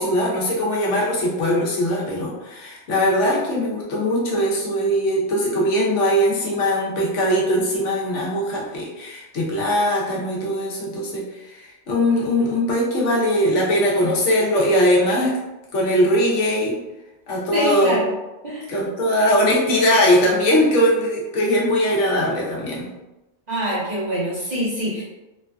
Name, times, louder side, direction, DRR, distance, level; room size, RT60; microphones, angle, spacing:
voice 1, 0.0-15.3 15.7-16.8 17.3-18.0 18.7-22.9, equal, 85° left, -4 dB, 1.1 m, -20 dB
voice 2, 17.5-18.1 18.4-18.7 23.5-25.0, equal, 40° right, -9 dB, 1.2 m, -25 dB
3.2 x 2.4 x 2.2 m, 1.0 s
omnidirectional pair, 1.2 m